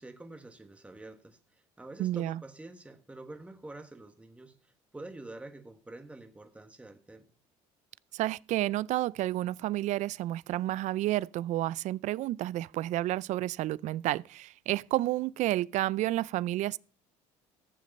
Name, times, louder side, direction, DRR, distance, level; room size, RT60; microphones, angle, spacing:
voice 1, 0.0-7.3, right 2 dB, 10° right, 1.4 m, -47 dB
voice 2, 2.0-2.4 8.1-16.8, right 15 dB, 60° right, 0.4 m, -30 dB
14.0 x 7.4 x 5.3 m
supercardioid pair, 95°, 14 cm